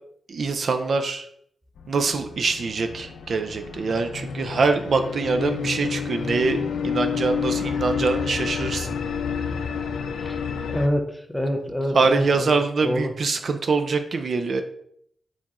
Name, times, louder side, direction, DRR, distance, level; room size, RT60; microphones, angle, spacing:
voice 1, 0.3-1.3 1.9-8.9 11.9-14.6, right 4 dB, 50° right, 7 dB, 0.3 m, -24 dB
sound 1, 1.8-10.9, left 6 dB, 90° left, 0.4 m, -29 dB
voice 2, 10.7-12.5 12.8-13.1, equal, ahead, 4 dB, 0.5 m, -26 dB
4.5 x 4.1 x 2.4 m, 0.68 s
wide cardioid pair, 145°, 0 cm